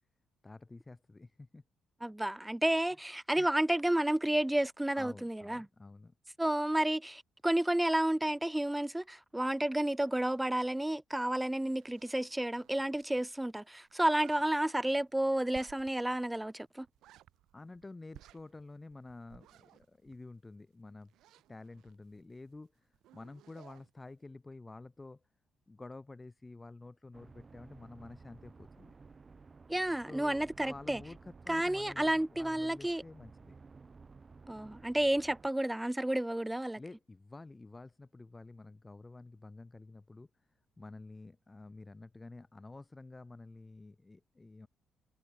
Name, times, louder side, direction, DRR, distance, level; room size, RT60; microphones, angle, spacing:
voice 1, 0.4-1.6 3.4-3.5 4.9-6.1 17.5-21.1 21.5-25.2 25.7-28.9 30.1-33.5 36.7-40.5 40.8-44.7, left 2 dB, 20° left, 4.3 m, -50 dB
voice 2, 2.0-5.7 6.4-16.9 29.7-31.0 31.5-33.0 34.5-36.8, right 1 dB, 10° right, 0.4 m, -31 dB
sound 1, 11.7-13.2 13.4-13.5 13.8-14.5 15.5-16.1 16.4-16.5 16.8-17.8 18.1-20.6 21.0-22.6 22.9-23.9, right 14 dB, 85° right, 2.3 m, -59 dB
sound 2, 27.1-35.5, right 4 dB, 30° right, 3.0 m, -55 dB
cardioid pair, 90°, 0 cm